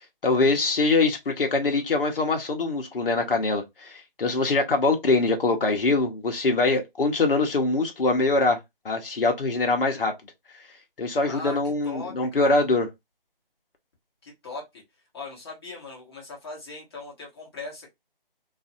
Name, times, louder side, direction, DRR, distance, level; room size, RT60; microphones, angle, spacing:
voice 1, 0.2-8.6 8.8-10.1 11.0-12.9, left 3 dB, 70° left, 1.0 m, -23 dB
voice 2, 11.2-11.6 11.8-12.5 14.2-14.8 15.1-17.9, left 3 dB, 25° left, 1.1 m, -39 dB
2.6 x 2.5 x 2.6 m
figure-of-eight pair, 165°, 29 cm